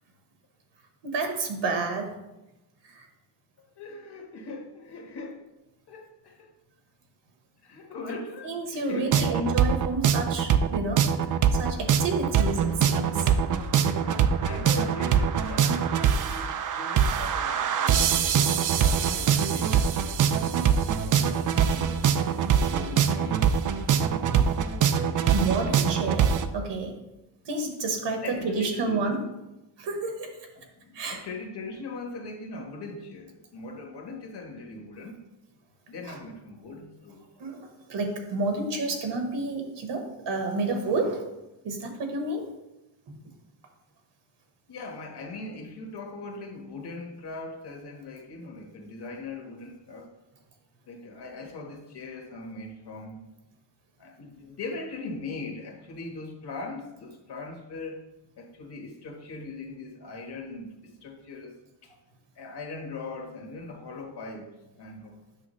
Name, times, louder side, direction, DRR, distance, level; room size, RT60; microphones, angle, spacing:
voice 1, 1.0-2.1 2.8-3.1 8.4-13.3 25.3-27.0 27.4-29.2 29.8-30.3 30.9-31.2 36.1-36.2 37.4-41.2 41.6-42.4 43.1-43.2, right 3 dB, 65° right, 4 dB, 1.4 m, -30 dB
voice 2, 3.6-5.4 5.9-6.5 7.6-9.4 13.7-22.0 22.5-24.5 24.8-25.8 28.2-29.2 30.6-35.2 35.9-37.2 44.7-50.1 50.9-53.2 54.0-58.0 58.4-61.5 61.8-61.9 62.3-65.2, left 3 dB, 55° left, 1 dB, 1.6 m, -40 dB
sound 1, 9.1-26.5, right 7 dB, 45° right, 0.4 m, -23 dB
8.4 x 5.9 x 3.2 m, 0.96 s
wide cardioid pair, 155°, 47 cm